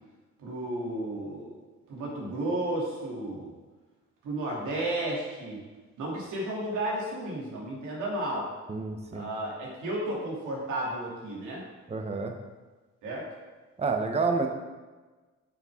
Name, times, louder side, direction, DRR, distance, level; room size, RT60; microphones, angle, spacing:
voice 1, 0.4-1.5 1.9-3.5 4.2-5.6 6.0-8.5 9.1-11.6 13.0-13.3, right 1 dB, 85° right, -4 dB, 2.7 m, -33 dB
voice 2, 8.7-9.3 11.9-12.4 13.8-14.5, right 4 dB, 20° right, 4 dB, 0.8 m, -29 dB
8.6 x 6.8 x 3.6 m, 1.3 s
cardioid pair, 90°, 30 cm